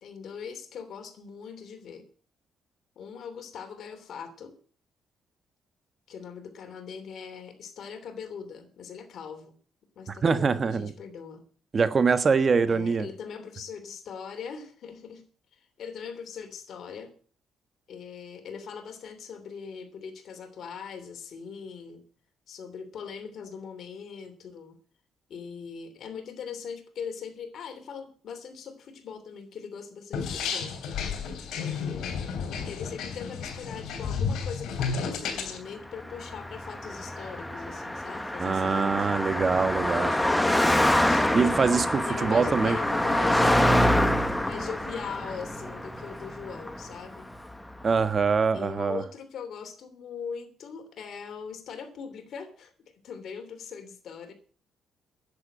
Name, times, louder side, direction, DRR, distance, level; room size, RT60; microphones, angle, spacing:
voice 1, 0.0-2.0 3.0-4.5 6.1-9.5 9.9-11.4 12.7-15.2 15.5-17.1 17.9-22.0 22.5-24.7 25.3-30.7 31.5-32.3 32.6-39.1 39.9-41.3 42.0-43.7 44.4-47.3 48.5-54.3, left 6 dB, 65° left, 3.1 m, -41 dB
voice 2, 10.1-10.9 11.7-13.1 38.4-40.1 41.3-42.8 47.8-49.0, right 5 dB, 40° right, 1.5 m, -24 dB
sound 1, 30.1-35.6, left 6 dB, 80° left, 3.2 m, -32 dB
Car passing by, 36.0-47.5, left 1 dB, 10° left, 1.3 m, -26 dB
10.5 x 8.5 x 8.7 m
cardioid pair, 90°, 0 cm